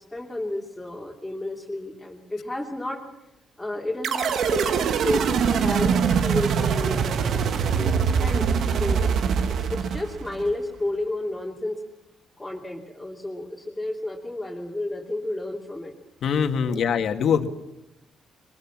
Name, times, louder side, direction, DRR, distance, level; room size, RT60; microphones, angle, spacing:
voice 1, 0.0-3.0 3.6-9.2 9.6-11.8 12.4-15.9 16.6-16.8, left 1 dB, 10° left, -2 dB, 3.1 m, -32 dB
sound 1, 4.0-10.5, right 6 dB, 70° right, 1.3 m, -23 dB
voice 2, 16.2-17.5, left 7 dB, 65° left, 6 dB, 1.9 m, -23 dB
22.0 x 21.5 x 7.4 m, 0.91 s
cardioid pair, 90°, 0 cm